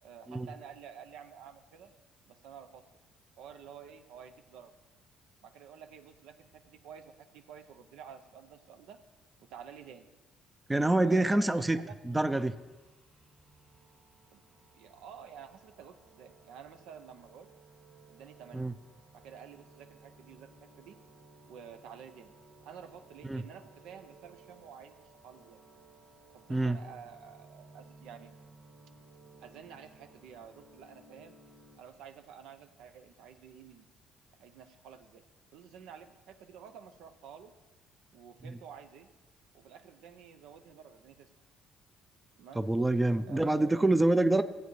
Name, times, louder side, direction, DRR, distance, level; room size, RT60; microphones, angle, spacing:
voice 1, 0.0-1.9 2.3-2.8 3.4-4.7 5.4-9.0 9.4-10.1 10.9-12.2 14.3-14.4 14.7-17.5 18.1-18.7 19.1-20.5 20.8-21.0 21.5-22.3 22.7-25.6 26.3-28.3 29.4-31.4 31.8-33.9 34.4-35.2 35.5-37.5 38.1-39.1 39.5-41.3 42.4-42.6 43.2-43.9, right 8 dB, 80° right, 8 dB, 0.7 m, -50 dB
voice 2, 10.7-12.5 18.5-18.7 23.3-23.4 26.5-26.8 38.4-38.6 42.6-44.4, right 2 dB, 10° right, 11 dB, 0.4 m, -26 dB
sound 1, 12.1-31.8, right 3 dB, 55° right, 2.2 m, -59 dB
15.5 x 8.1 x 3.2 m, 1.2 s
cardioid pair, 95°, 0 cm